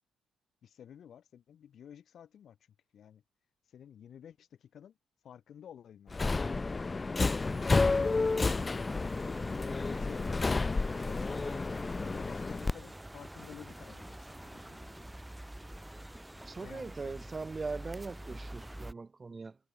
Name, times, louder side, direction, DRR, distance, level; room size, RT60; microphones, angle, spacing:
voice 1, 0.6-2.6 2.9-3.2 3.7-5.0 5.2-6.4 7.5-8.4 9.2-11.4 11.9-15.1 16.6-17.2, left 9 dB, 60° left, 4.0 m, -52 dB
Subway metro underground, 6.1-12.7, left 3 dB, 25° left, 0.8 m, -30 dB
sound 1, 7.3-18.9, right 1 dB, 5° right, 4.0 m, -47 dB
voice 2, 16.5-19.6, right 4 dB, 30° right, 1.3 m, -40 dB
cardioid pair, 90°, 0 cm